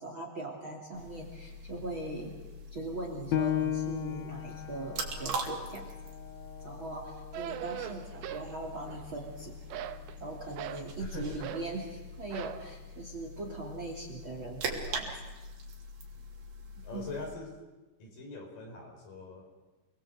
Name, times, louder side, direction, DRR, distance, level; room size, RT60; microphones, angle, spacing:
voice 1, 0.0-2.4 2.7-5.9 6.6-9.6 10.2-15.1 16.9-17.1, right 2 dB, 30° right, 2 dB, 3.1 m, -40 dB
sound 1, 0.9-17.3, right 2 dB, 65° right, 5.1 m, -42 dB
Piano, 3.3-8.5 9.0-9.1 9.7-10.2, left 10 dB, 70° left, 1.7 m, -36 dB
sound 2, 7.3-8.5 8.8-9.3 9.7-10.9 11.4-11.7 12.3-12.6, right 11 dB, 85° right, 3.2 m, -40 dB
voice 2, 11.0-11.5 16.8-17.5 18.0-19.5, left 3 dB, 50° left, 2 dB, 6.4 m, -42 dB
28.0 x 21.5 x 8.0 m, 1.1 s
omnidirectional pair, 5.0 m